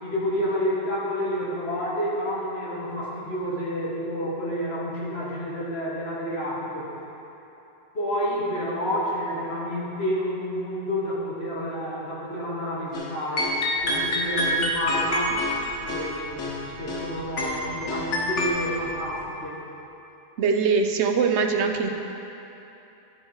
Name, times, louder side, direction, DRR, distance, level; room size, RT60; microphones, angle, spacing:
voice 1, 0.0-6.9 7.9-13.5 13.8-15.4 15.8-19.6, equal, 60° left, -6 dB, 2.0 m, -29 dB
sound 1, 12.9-13.1 13.4-17.1 17.4-18.5, left 1 dB, 80° left, 1.5 m, -27 dB
sound 2, 13.7-19.3, right 1 dB, 40° right, 1.0 m, -48 dB
voice 2, 20.4-21.9, right 5 dB, 75° right, 5 dB, 0.9 m, -22 dB
12.0 x 6.3 x 4.8 m, 3.0 s
omnidirectional pair, 1.2 m